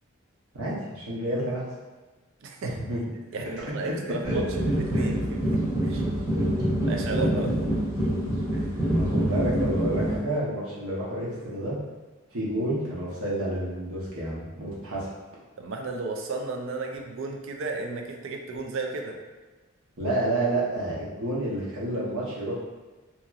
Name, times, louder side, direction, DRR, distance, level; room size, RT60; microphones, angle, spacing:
voice 1, 0.5-1.7 2.6-3.0 3.6-3.9 4.2-4.4 4.9-5.1 6.6-6.7 7.3-7.6 8.9-11.8 12.3-15.1 20.0-22.5, right 1 dB, 85° right, -6 dB, 0.9 m, -30 dB
voice 2, 2.4-2.7 3.3-6.0 6.8-7.5 15.6-19.2, right 3 dB, 65° right, 2 dB, 0.4 m, -34 dB
sound 1, 4.2-10.2, right 1 dB, 15° right, 1.1 m, -26 dB
2.8 x 2.8 x 2.4 m, 1.2 s
head